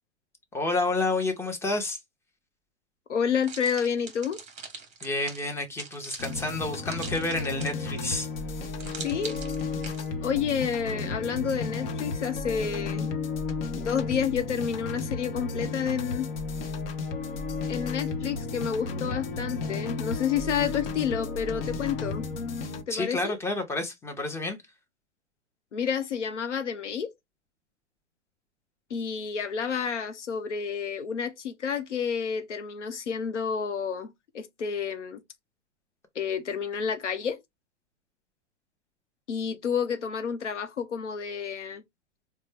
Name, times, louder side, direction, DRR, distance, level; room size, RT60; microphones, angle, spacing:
voice 1, 0.5-2.0 5.0-8.3 22.9-24.6, left 2 dB, 5° left, 0.8 m, -29 dB
voice 2, 3.1-4.4 9.0-9.4 10.2-13.1 13.8-16.3 17.7-22.3 22.9-23.4 25.7-27.1 28.9-34.1 34.3-35.2 36.1-37.4 39.3-41.8, left 7 dB, 80° left, 0.9 m, -30 dB
sound 1, 3.4-8.0 8.8-10.1, right 5 dB, 20° right, 1.1 m, -42 dB
sound 2, 6.2-22.8, left 4 dB, 50° left, 0.9 m, -33 dB
4.1 x 2.2 x 3.3 m
figure-of-eight pair, 105°, 35 cm